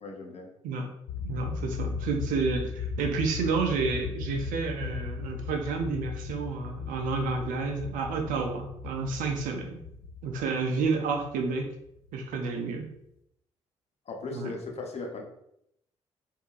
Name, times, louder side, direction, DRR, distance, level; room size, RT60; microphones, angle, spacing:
voice 1, 0.0-0.5 14.1-15.2, left 3 dB, 45° left, 1 dB, 0.9 m, -37 dB
sound 1, 1.1-12.4, left 5 dB, 75° left, 0.4 m, -37 dB
voice 2, 1.2-9.8 10.2-11.7 12.1-12.9 14.3-14.5, right 4 dB, 70° right, 4 dB, 0.6 m, -30 dB
4.5 x 2.7 x 2.4 m, 0.78 s
hypercardioid pair, 45°, 14 cm